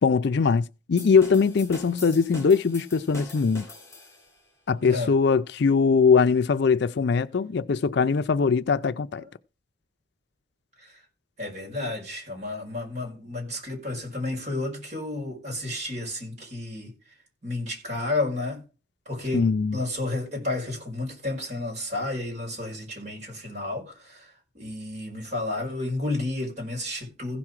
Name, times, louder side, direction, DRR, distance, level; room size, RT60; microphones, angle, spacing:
voice 1, 0.0-3.7 4.7-9.2 19.3-19.8, left 5 dB, 60° left, 0.4 m, -21 dB
sound 1, 1.0-4.4, left 2 dB, 15° left, 3.1 m, -43 dB
voice 2, 4.8-5.1 9.2-9.3 10.8-10.9 11.4-16.9 17.4-18.6 19.0-19.5 19.7-27.4, left 2 dB, 40° right, 4.9 m, -31 dB
15.5 x 6.0 x 4.8 m
head